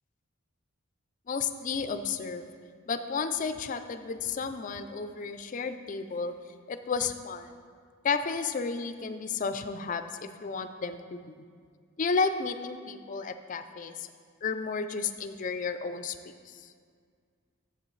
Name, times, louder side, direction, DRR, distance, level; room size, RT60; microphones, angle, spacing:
voice 1, 1.3-2.4 2.9-6.3 6.7-7.5 8.0-10.0 10.4-11.2 12.0-14.1 14.4-16.7, left 5 dB, 40° left, 9 dB, 0.4 m, -32 dB
11.5 x 7.7 x 3.2 m, 2.1 s
head